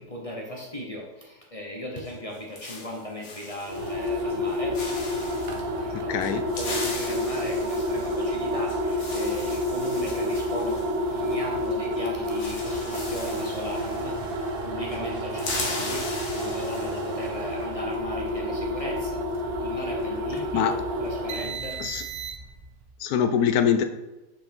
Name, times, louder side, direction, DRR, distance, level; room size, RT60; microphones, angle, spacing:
voice 1, 0.0-4.8 5.7-14.2 14.6-16.1 16.3-19.2 19.6-21.8, equal, 25° left, -1 dB, 0.8 m, -37 dB
sound 1, 2.0-4.0 4.3-4.5 4.7-5.6 6.2-11.7 11.9-12.0 12.2-14.6 14.9-17.3, left 3 dB, 50° left, 1.4 m, -38 dB
sound 2, 3.7-22.7, left 1 dB, 50° right, 0.8 m, -29 dB
voice 2, 5.9-6.5 20.5-20.7 21.8-22.0 23.0-23.8, left 8 dB, 70° left, 10 dB, 1.0 m, -23 dB
6.0 x 4.8 x 4.4 m, 1.0 s
omnidirectional pair, 1.8 m